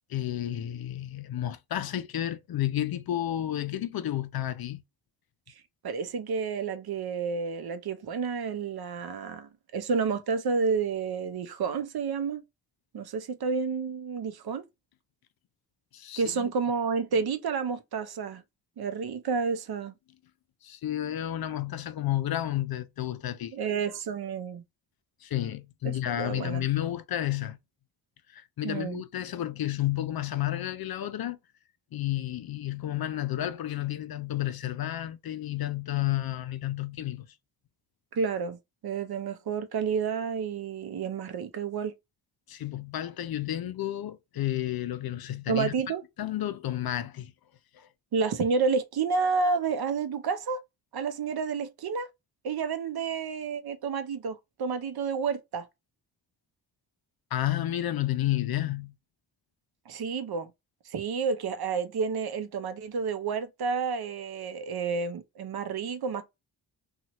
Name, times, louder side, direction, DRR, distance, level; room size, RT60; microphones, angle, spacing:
voice 1, 0.1-4.8 15.9-16.5 20.6-23.5 25.2-27.6 28.3-31.4 31.9-37.3 42.5-45.7 46.2-47.3 47.7-47.9 57.3-58.9, left 13 dB, 50° left, 0.5 m, -31 dB
voice 2, 5.8-12.4 12.9-14.6 16.2-18.4 18.8-19.9 23.5-24.6 25.8-26.7 28.6-29.0 38.1-41.9 45.5-46.0 48.1-50.6 50.9-52.1 52.4-55.7 59.9-60.5 60.9-66.2, right 5 dB, 50° right, 0.7 m, -30 dB
2.7 x 2.4 x 2.9 m
supercardioid pair, 45°, 47 cm